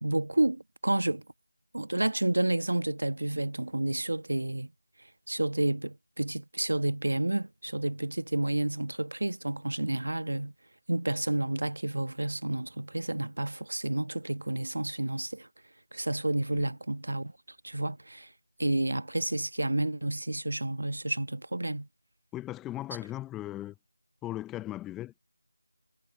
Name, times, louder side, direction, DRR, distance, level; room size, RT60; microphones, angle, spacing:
voice 1, 0.0-1.2 1.7-4.7 5.3-10.5 10.9-15.5 15.9-17.3 17.6-18.3 18.6-21.9, right 1 dB, 65° right, 1.3 m, -30 dB
voice 2, 22.3-23.7 24.2-25.2, left 14 dB, 5° left, 0.4 m, -38 dB
figure-of-eight pair, 170°, 0 cm